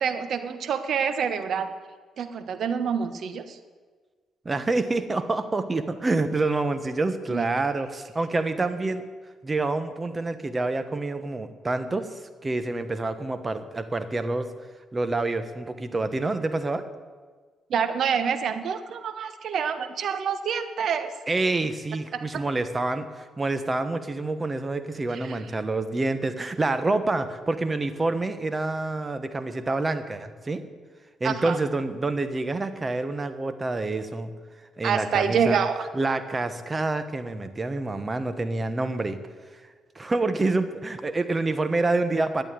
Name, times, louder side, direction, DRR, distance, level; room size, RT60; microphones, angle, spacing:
voice 1, 0.0-1.7 2.2-3.6 7.3-7.4 17.7-21.1 22.1-22.4 25.1-25.4 31.2-31.6 34.8-35.9, right 7 dB, 60° right, 10 dB, 1.1 m, -27 dB
voice 2, 4.4-9.0 9.4-12.1 12.4-14.5 14.9-16.8 21.3-30.6 31.2-34.3 34.8-35.6 35.9-39.2 39.9-42.4, right 2 dB, 25° right, 10 dB, 1.2 m, -27 dB
11.5 x 8.9 x 9.2 m, 1.5 s
cardioid pair, 90°, 0 cm